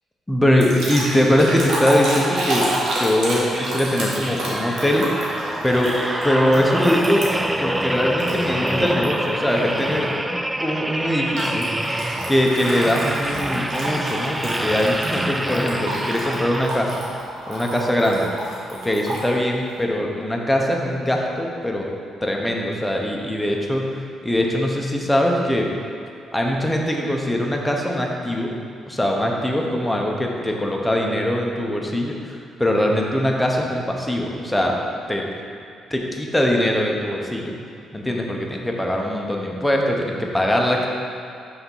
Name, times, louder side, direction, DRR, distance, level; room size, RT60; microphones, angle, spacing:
voice 1, 0.3-2.7 3.0-5.2 5.6-6.0 6.2-7.2 7.6-10.1 10.6-11.7 12.3-17.0 17.5-18.3 18.7-21.9 22.2-23.8 24.2-25.7 26.3-28.5 28.9-34.8 35.1-35.2 35.9-37.6 37.9-40.9, left 1 dB, 5° left, 0 dB, 0.9 m, -21 dB
sound 1, 0.6-7.6 8.2-9.1 9.5-9.8 11.4-19.3, right 1 dB, 70° right, 1.4 m, -29 dB
sound 2, 3.5-17.1 17.6-17.8, right 1 dB, 10° right, 0.3 m, -26 dB
5.7 x 4.1 x 5.5 m, 2.4 s
cardioid pair, 90°, 0 cm